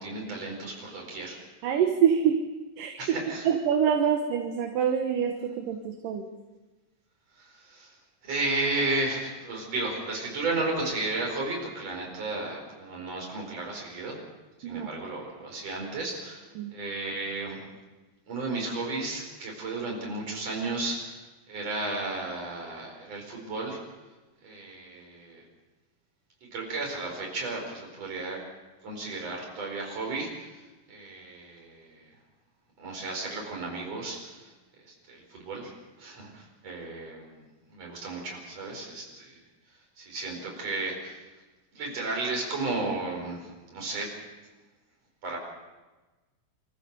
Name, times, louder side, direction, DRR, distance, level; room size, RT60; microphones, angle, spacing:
voice 1, 0.0-1.4 3.0-3.5 7.4-7.9 8.2-14.2 14.7-17.7 18.3-23.8 24.4-25.4 26.5-28.4 28.8-32.1 32.8-34.5 34.8-35.7 36.0-37.4 37.7-39.4 40.0-41.2 41.7-44.2 45.2-45.4, right 2 dB, 45° right, 0 dB, 6.0 m, -34 dB
voice 2, 1.6-2.5 2.8-6.3 14.6-14.9 16.6-16.7, right 8 dB, 70° right, 4 dB, 2.8 m, -26 dB
26.5 x 14.5 x 6.9 m, 1.2 s
omnidirectional pair, 4.1 m